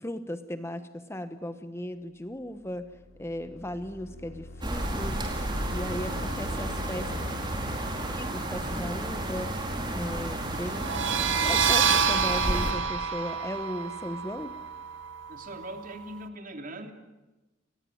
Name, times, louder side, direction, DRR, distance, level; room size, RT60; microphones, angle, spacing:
voice 1, 0.0-2.9 3.2-5.2 5.7-7.1 8.1-9.6 9.9-11.1 11.4-14.6, equal, 15° left, 10 dB, 1.0 m, -36 dB
sound 1, 2.5-10.3, left 1 dB, 85° left, 2.9 m, -43 dB
sound 2, 4.6-12.7, right 1 dB, 25° right, 4.5 m, -32 dB
sound 3, 10.8-16.2, right 6 dB, 70° right, 1.7 m, -28 dB
voice 2, 15.3-16.9, right 1 dB, 45° right, 6 dB, 3.1 m, -40 dB
29.5 x 20.0 x 9.4 m, 1.1 s
head